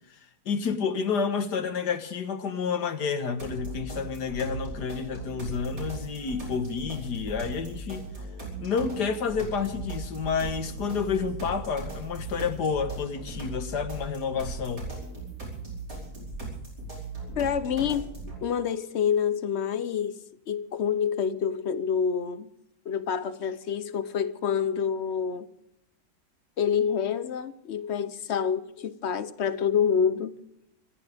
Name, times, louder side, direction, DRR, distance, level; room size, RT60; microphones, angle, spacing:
voice 1, 0.5-8.1 8.6-14.9, left 6 dB, 85° left, 2.0 m, -29 dB
sound 1, 3.4-18.4, right 3 dB, 85° right, 5.7 m, -38 dB
voice 2, 17.4-18.1 18.4-20.2 20.5-22.5 22.9-25.5 26.6-30.3, left 7 dB, 50° left, 1.0 m, -27 dB
26.0 x 15.0 x 3.5 m
omnidirectional pair, 1.7 m